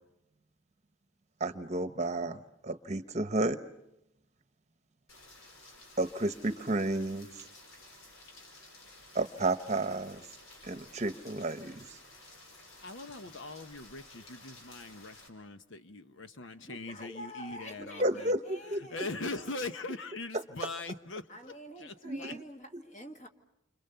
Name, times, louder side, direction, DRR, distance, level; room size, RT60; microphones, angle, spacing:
voice 1, 1.4-3.6 6.0-7.4 9.1-10.2 10.6-12.0 18.0-18.8 22.0-22.4, right 2 dB, 35° right, 10 dB, 1.0 m, -32 dB
Rain, 5.1-15.3, left 2 dB, 85° left, 4.7 m, -54 dB
voice 2, 12.8-18.3 18.7-21.3 21.8-22.3, left 3 dB, 65° left, 9 dB, 1.0 m, -41 dB
voice 3, 16.6-19.5 21.3-23.3, equal, 35° left, 5 dB, 2.1 m, -47 dB
29.5 x 26.5 x 6.9 m, 0.84 s
head